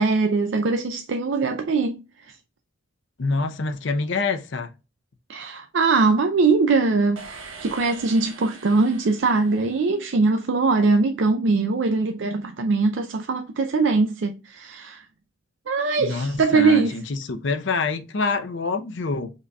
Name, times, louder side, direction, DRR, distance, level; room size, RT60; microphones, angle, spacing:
voice 1, 0.0-2.4 5.3-7.2 7.6-15.0 15.7-16.9, right 3 dB, 65° right, 0.4 m, -21 dB
voice 2, 3.2-4.7 16.0-19.3, left 3 dB, 65° left, 0.6 m, -26 dB
sound 1, 7.2-10.3, right 4 dB, 90° right, 1.0 m, -43 dB
5.3 x 3.9 x 2.3 m
head